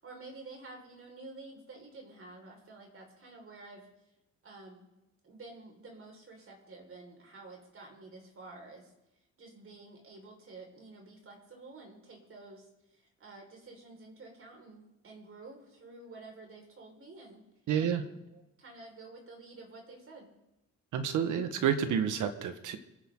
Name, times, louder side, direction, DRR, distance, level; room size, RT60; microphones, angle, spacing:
voice 1, 0.0-3.9 4.4-4.9 5.2-8.9 9.4-12.7 13.0-17.4 17.8-20.3, right 3 dB, 45° right, 0 dB, 5.4 m, -50 dB
voice 2, 17.7-18.0 20.9-22.8, right 8 dB, 80° right, 8 dB, 1.7 m, -29 dB
27.0 x 10.5 x 4.0 m, 0.89 s
cardioid pair, 90°, 30 cm